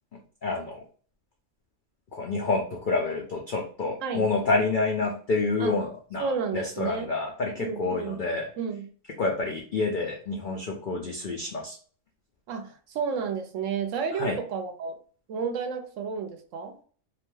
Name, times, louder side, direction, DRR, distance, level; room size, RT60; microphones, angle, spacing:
voice 1, 0.4-0.8 2.1-8.5 9.2-11.8 14.2-14.4, left 3 dB, 75° left, 0 dB, 0.4 m, -28 dB
voice 2, 6.2-7.1 7.6-8.2 8.6-8.9 12.5-14.9 15.3-16.8, right 6 dB, 70° right, 6 dB, 0.9 m, -31 dB
2.7 x 2.2 x 3.1 m, 0.43 s
omnidirectional pair, 1.5 m